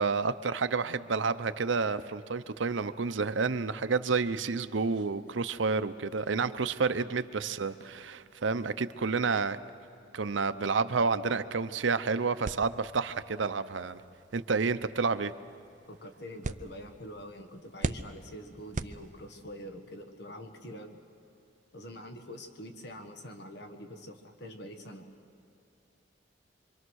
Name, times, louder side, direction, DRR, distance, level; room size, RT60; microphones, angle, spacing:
voice 1, 0.0-9.6 10.1-14.0 14.3-15.3, right 4 dB, 85° right, 12 dB, 0.7 m, -30 dB
sound 1, 12.4-19.6, right 3 dB, 45° right, 0.5 m, -42 dB
voice 2, 15.9-21.0 21.7-25.0, equal, 65° left, 5 dB, 1.5 m, -45 dB
25.0 x 24.5 x 6.4 m, 2.7 s
head